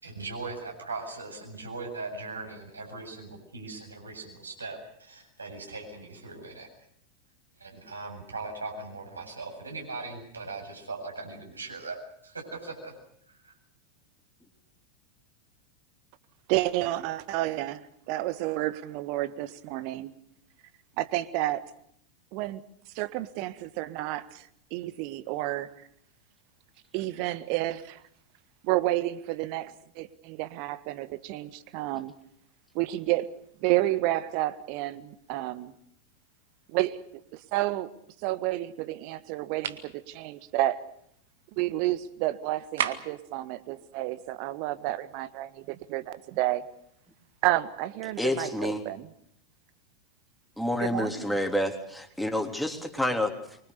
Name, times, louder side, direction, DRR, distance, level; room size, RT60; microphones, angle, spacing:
voice 1, 0.0-6.7 7.6-12.0 12.2-12.9 13.3-13.5, right 3 dB, 75° right, 2 dB, 7.8 m, -39 dB
voice 2, 16.5-20.1 21.0-21.6 22.3-22.6 22.9-25.9 26.9-28.0 28.6-32.1 32.7-35.7 36.7-37.0 37.3-37.9 38.2-40.8 41.6-46.6 47.4-49.1 50.8-51.3, right 16 dB, 45° right, 13 dB, 1.6 m, -30 dB
sound 1, 39.6-39.9 42.8-43.2, right 9 dB, 60° right, 1.9 m, -31 dB
voice 3, 48.2-48.8 50.6-53.6, left 1 dB, ahead, 4 dB, 3.3 m, -29 dB
25.0 x 24.5 x 6.8 m, 0.68 s
figure-of-eight pair, 90°, 0 cm